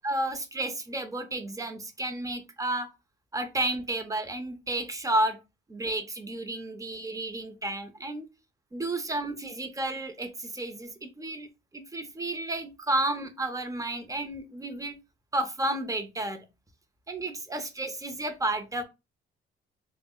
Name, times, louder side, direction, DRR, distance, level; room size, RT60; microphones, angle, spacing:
voice 1, 0.0-2.9 3.3-5.4 5.7-8.3 8.7-15.0 15.3-16.5 17.1-18.8, right 2 dB, 15° right, 7 dB, 0.7 m, -32 dB
3.3 x 2.2 x 3.7 m, 0.25 s
cardioid pair, 90°, 20 cm